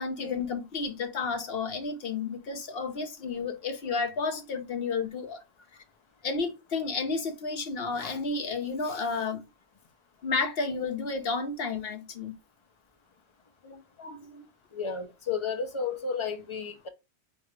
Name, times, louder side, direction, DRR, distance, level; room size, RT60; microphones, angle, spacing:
voice 1, 0.0-5.4 6.2-9.5 10.2-12.3 13.6-14.5 14.8-15.0, left 4 dB, 55° left, 1.1 m, -32 dB
voice 2, 14.7-16.9, left 5 dB, 30° left, 0.6 m, -32 dB
3.8 x 3.6 x 3.1 m
omnidirectional pair, 1.3 m